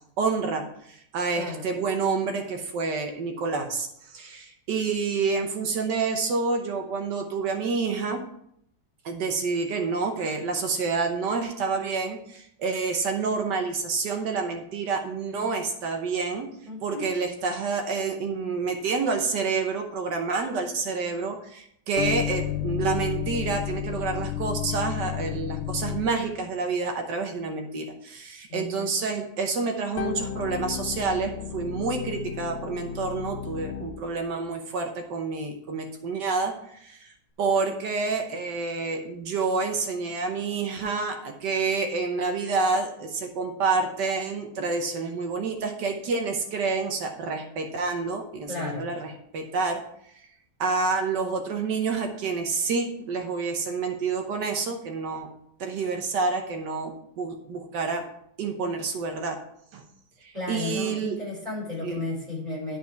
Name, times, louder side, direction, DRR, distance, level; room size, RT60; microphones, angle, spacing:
voice 1, 0.2-8.2 9.0-16.5 16.8-49.8 50.6-55.3 55.6-58.0 58.4-59.4 59.7-59.8 60.2-61.2 61.8-62.0, right 4 dB, 85° right, 4 dB, 1.6 m, -28 dB
voice 2, 16.6-17.1 28.5-28.9 48.5-48.9 60.3-62.8, left 2 dB, 25° right, -5 dB, 4.5 m, -33 dB
sound 1, 22.0-26.4 30.0-34.1, left 10 dB, 60° left, 0.7 m, -32 dB
12.0 x 4.8 x 4.6 m, 0.72 s
omnidirectional pair, 1.8 m